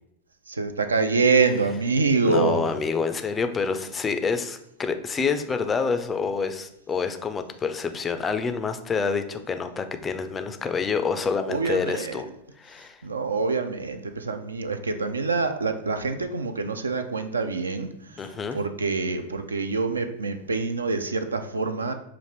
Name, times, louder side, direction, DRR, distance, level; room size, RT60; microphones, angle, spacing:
voice 1, 0.5-2.6 11.5-12.2 13.0-18.2 18.5-21.9, right 4 dB, 75° right, 8 dB, 0.3 m, -25 dB
voice 2, 2.2-12.3 12.6-13.0 18.2-18.6, left 5 dB, 20° left, 8 dB, 0.3 m, -27 dB
5.8 x 2.5 x 3.2 m, 0.80 s
figure-of-eight pair, 90°, 0 cm